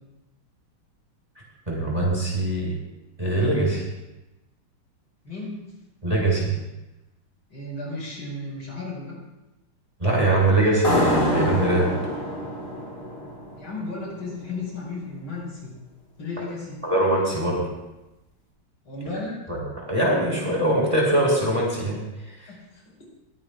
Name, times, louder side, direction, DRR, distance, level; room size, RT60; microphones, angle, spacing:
voice 1, 1.7-2.7 3.2-3.8 6.0-6.6 10.0-11.9 16.8-17.6 19.5-19.6 19.9-22.0, right 1 dB, 15° right, -4 dB, 5.2 m, -22 dB
voice 2, 5.2-5.6 7.5-9.2 13.6-15.8 16.2-16.8 18.8-19.4 22.5-22.8, left 2 dB, 70° left, -3 dB, 6.0 m, -34 dB
sound 1, 10.8-14.2, left 1 dB, 40° left, 4.9 m, -26 dB
21.0 x 17.0 x 2.4 m, 0.98 s
omnidirectional pair, 2.3 m